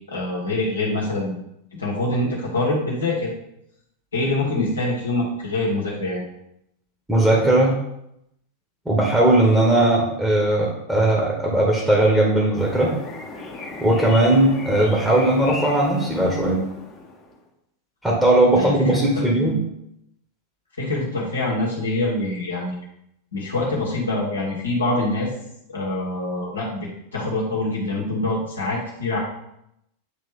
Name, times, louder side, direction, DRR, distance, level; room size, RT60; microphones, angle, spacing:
voice 1, 0.0-1.3 1.8-3.3 4.1-6.2 18.5-19.6 20.8-22.8 23.3-25.3 25.7-29.2, left 2 dB, 75° left, -4 dB, 1.6 m, -25 dB
voice 2, 7.1-7.7 8.8-12.9 13.8-16.6 18.0-19.6, right 1 dB, 5° right, -3 dB, 1.5 m, -18 dB
sound 1, 12.5-17.4, left 3 dB, 25° left, 1.2 m, -36 dB
9.0 x 3.3 x 3.6 m, 0.79 s
figure-of-eight pair, 90°, 0 cm